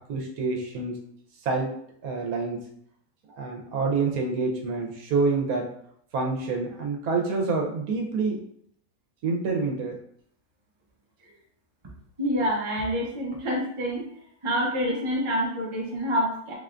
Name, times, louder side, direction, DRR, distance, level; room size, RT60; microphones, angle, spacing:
voice 1, 0.1-1.0 1.4-1.7 2.0-2.7 3.3-5.7 6.1-8.4 9.2-10.0, right 4 dB, 80° right, 2 dB, 1.2 m, -27 dB
voice 2, 12.2-14.0 14.4-16.5, equal, 25° right, -4 dB, 0.7 m, -27 dB
3.9 x 3.4 x 2.5 m, 0.66 s
omnidirectional pair, 1.6 m